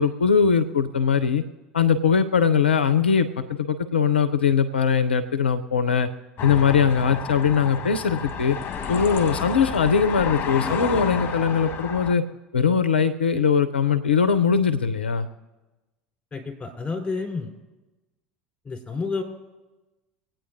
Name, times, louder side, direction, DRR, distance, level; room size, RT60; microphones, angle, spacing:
voice 1, 0.0-1.4 1.7-6.1 6.4-8.6 8.9-12.2 12.5-15.3, left 6 dB, 90° left, 10 dB, 0.5 m, -21 dB
sound 1, 6.4-12.1, left 6 dB, 40° left, 1.3 m, -31 dB
voice 2, 16.3-17.5 18.6-19.2, left 4 dB, 20° left, 1 dB, 3.9 m, -30 dB
25.0 x 8.9 x 2.6 m, 1.1 s
hypercardioid pair, 75°, 6 cm